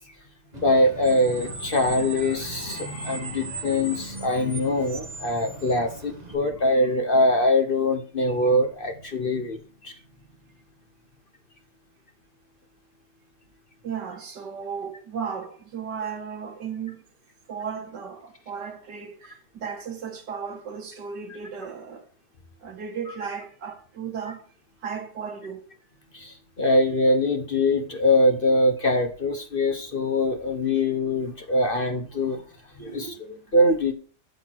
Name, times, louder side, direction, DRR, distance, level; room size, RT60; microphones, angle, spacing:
Screech, 0.5-6.3, right 3 dB, 25° right, 1.8 m, -38 dB
voice 1, 0.6-9.6 9.8-9.9 23.1-23.2 26.1-32.4 32.8-33.2 33.5-33.9, left 1 dB, 40° left, 1.0 m, -23 dB
voice 2, 13.8-17.0 17.5-22.1 22.6-24.4 24.8-25.7 32.8-33.4, right 6 dB, 85° right, 2.3 m, -35 dB
8.1 x 8.0 x 4.5 m
omnidirectional pair, 1.8 m